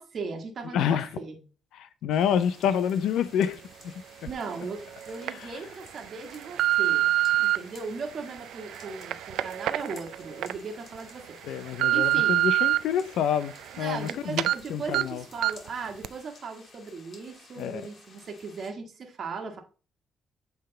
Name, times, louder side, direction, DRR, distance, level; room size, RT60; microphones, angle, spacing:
voice 1, 0.0-1.4 4.3-7.1 7.4-11.4 11.9-12.4 13.7-19.6, right 4 dB, 50° right, 1.4 m, -37 dB
voice 2, 0.7-1.1 1.7-3.9 5.3-5.5 11.4-14.4 14.7-15.2 17.6-17.8, left 8 dB, 80° left, 0.5 m, -28 dB
sound 1, 2.1-18.7, left 3 dB, 45° left, 2.2 m, -54 dB
sound 2, 4.3-4.4 5.0-5.3 5.9-7.6 8.2-10.5 10.9-11.0 11.5-12.8 13.2-14.1 14.4-14.5 14.9-15.0 15.4-15.7 16.0-16.1, right 14 dB, 85° right, 0.3 m, -26 dB
7.8 x 3.4 x 3.8 m
cardioid pair, 90°, 0 cm